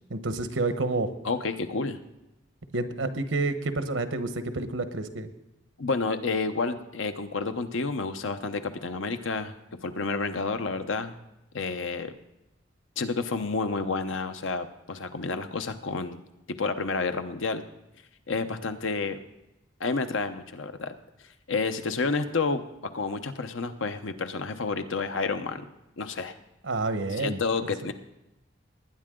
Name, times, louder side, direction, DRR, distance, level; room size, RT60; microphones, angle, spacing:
voice 1, 0.1-1.1 2.7-5.3 26.6-27.4, right 3 dB, 90° right, 9 dB, 1.1 m, -29 dB
voice 2, 1.2-2.0 5.8-9.5 9.8-11.2 11.5-12.1 13.0-16.2 16.6-17.6 18.3-19.2 19.8-20.9 21.5-22.6 22.9-25.6 26.0-26.3 27.2-27.9, left 4 dB, 85° left, 8 dB, 0.9 m, -30 dB
20.0 x 9.7 x 3.8 m, 0.91 s
head